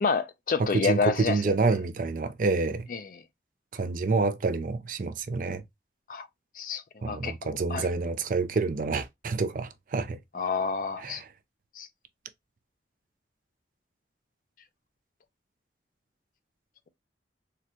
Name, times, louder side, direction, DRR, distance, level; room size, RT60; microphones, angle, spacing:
voice 1, 0.0-1.6 2.9-3.1 6.1-6.3 6.6-7.9 10.3-11.2 11.8-11.9, left 5 dB, 45° left, 0.4 m, -29 dB
voice 2, 0.6-2.9 3.7-5.6 7.0-10.2 11.0-11.3, right 3 dB, 45° right, 0.4 m, -28 dB
3.8 x 2.1 x 2.8 m
head